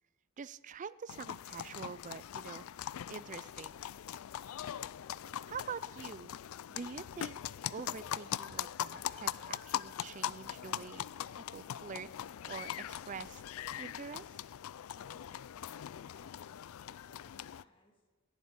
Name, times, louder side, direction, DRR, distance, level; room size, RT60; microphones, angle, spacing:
voice 1, 0.4-2.7 3.1-3.8 4.4-4.8 5.5-6.3 6.7-7.4 7.7-11.1 11.3-12.1 12.5-13.4 13.8-14.4, right 6 dB, 35° right, 17 dB, 0.3 m, -46 dB
sound 1, 1.1-17.6, left 10 dB, 65° left, 0.3 m, -41 dB
voice 2, 16.9-18.1, left 1 dB, 25° left, 2 dB, 1.9 m, -68 dB
15.0 x 7.3 x 9.8 m, 1.3 s
head